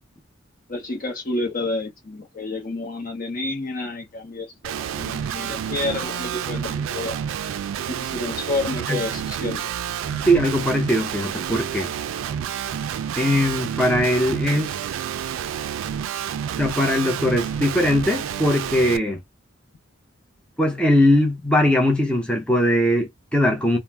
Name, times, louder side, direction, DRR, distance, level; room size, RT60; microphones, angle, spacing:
voice 1, 0.7-7.2 7.9-9.7, left 2 dB, 45° left, 0.7 m, -29 dB
Guitar, 4.6-19.0, right 8 dB, 80° right, 0.3 m, -29 dB
voice 2, 10.1-11.9 13.2-14.7 16.6-19.2 20.6-23.8, left 1 dB, 5° left, 0.6 m, -20 dB
2.5 x 2.0 x 3.2 m
head